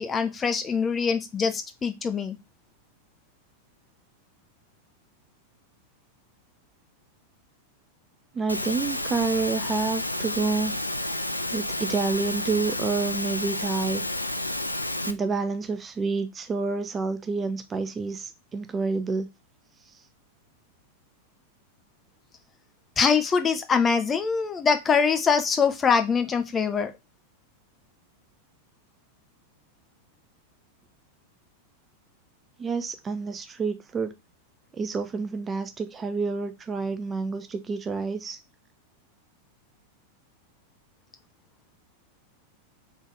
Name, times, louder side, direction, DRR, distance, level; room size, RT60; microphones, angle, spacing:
voice 1, 0.0-2.4 23.0-26.9, left 6 dB, 20° left, 0.7 m, -23 dB
voice 2, 8.3-10.7 11.5-14.0 15.0-19.3 32.6-34.1 34.8-38.4, right 4 dB, 20° right, 0.5 m, -28 dB
Engine / Mechanisms, 8.5-15.1, left 1 dB, 85° left, 0.4 m, -30 dB
3.7 x 3.4 x 3.9 m
figure-of-eight pair, 90°, 0 cm